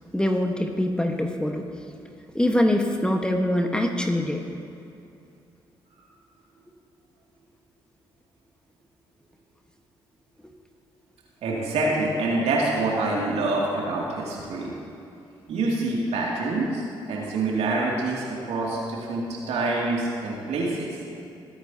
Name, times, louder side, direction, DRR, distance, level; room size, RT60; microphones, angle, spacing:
voice 1, 0.1-1.7 2.3-4.5 11.8-11.9, left 1 dB, 5° left, 3 dB, 1.4 m, -24 dB
voice 2, 11.4-14.7 15.5-20.9, right 2 dB, 65° right, -3 dB, 2.5 m, -26 dB
21.5 x 9.6 x 2.9 m, 2.7 s
hypercardioid pair, 40°, 12 cm